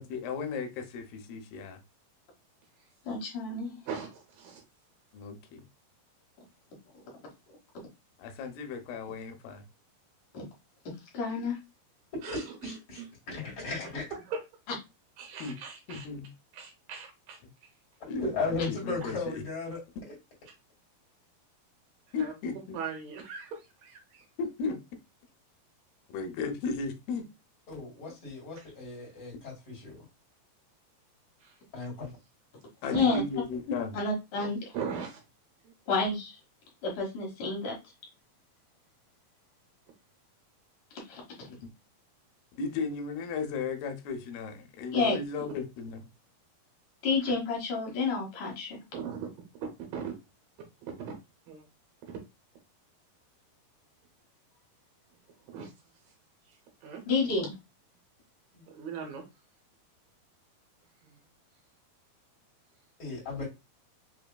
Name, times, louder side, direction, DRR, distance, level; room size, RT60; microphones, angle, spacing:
voice 1, 0.0-1.8 5.1-5.7 8.2-9.6 15.4-15.6 15.9-16.3 18.1-19.4 22.1-22.8 24.4-24.8 26.1-27.3 32.8-34.0 42.6-45.9, left 4 dB, 90° left, 2.6 m, -35 dB
voice 2, 3.1-3.8 10.3-10.4 11.1-11.6 32.9-33.1 33.9-34.7 35.9-36.4 36.8-37.7 41.1-41.5 44.9-45.2 47.0-48.8 57.1-57.5, left 4 dB, 65° left, 2.6 m, -30 dB
voice 3, 3.9-4.6 12.2-13.1 14.0-14.4 15.2-16.1 16.5-17.4 22.2-22.3 22.7-24.3 28.6-28.7 31.4-31.6 33.0-33.2 34.7-35.2 35.6-35.7 48.9-49.3 49.6-50.1 50.9-51.2 51.5-51.6 52.0-52.2 55.4-55.7 56.0-56.1 56.5-57.0 58.7-59.2 61.0-61.2, right 6 dB, 75° right, 2.5 m, -40 dB
voice 4, 12.3-13.0 13.3-14.0 18.1-19.8 27.7-30.0 31.7-32.1 58.5-58.6 63.0-63.5, left 3 dB, 40° left, 2.6 m, -35 dB
6.0 x 2.8 x 2.2 m
omnidirectional pair, 4.3 m